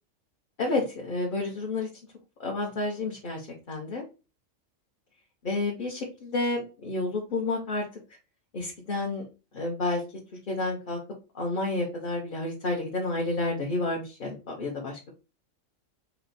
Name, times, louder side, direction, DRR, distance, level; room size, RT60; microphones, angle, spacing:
voice 1, 0.6-1.9 2.4-4.0 5.4-7.8 8.5-9.2 9.5-10.0 10.5-11.0 11.3-15.1, left 2 dB, 45° left, -2 dB, 0.9 m, -30 dB
4.4 x 2.1 x 3.9 m, 0.30 s
omnidirectional pair, 1.3 m